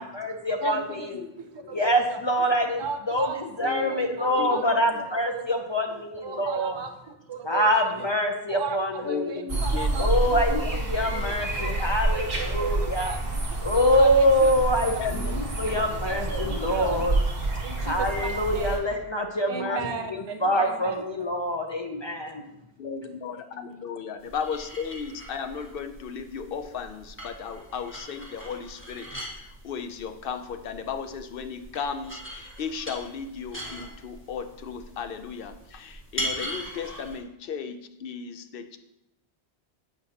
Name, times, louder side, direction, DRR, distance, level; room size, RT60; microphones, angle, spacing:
voice 1, 0.0-1.2 1.7-3.3 3.6-6.8 7.4-9.5 10.0-13.1 13.6-17.1 17.8-19.8 20.1-22.4, equal, 50° left, 3 dB, 0.3 m, -25 dB
voice 2, 0.6-1.1 1.4-2.5 2.8-4.6 4.9-5.4 5.9-8.1 8.5-10.7 11.3-14.5 16.0-17.1 17.6-18.8 19.5-21.0, right 5 dB, 35° right, 5 dB, 0.4 m, -37 dB
voice 3, 3.6-4.1 4.4-4.6 9.0-10.7 11.0-11.4 15.0-15.6 19.7-19.9 22.8-29.1 29.4-38.8, left 6 dB, 65° left, 8 dB, 0.7 m, -35 dB
sound 1, 9.5-18.8, right 2 dB, 60° right, 1.5 m, -28 dB
sound 2, 24.2-37.2, equal, 10° left, 1.4 m, -40 dB
8.1 x 5.2 x 2.8 m, 0.85 s
omnidirectional pair, 1.1 m